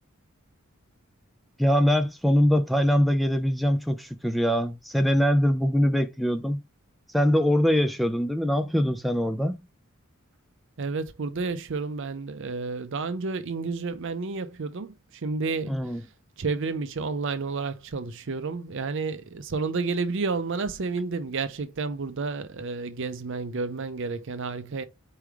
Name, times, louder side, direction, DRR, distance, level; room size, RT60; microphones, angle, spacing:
voice 1, 1.6-6.6 7.1-9.6 15.7-16.0, equal, ahead, 0.4 m, -23 dB
voice 2, 10.8-14.9 15.2-15.8 16.4-24.8, right 4 dB, 60° right, 0.6 m, -30 dB
4.6 x 3.2 x 3.5 m
head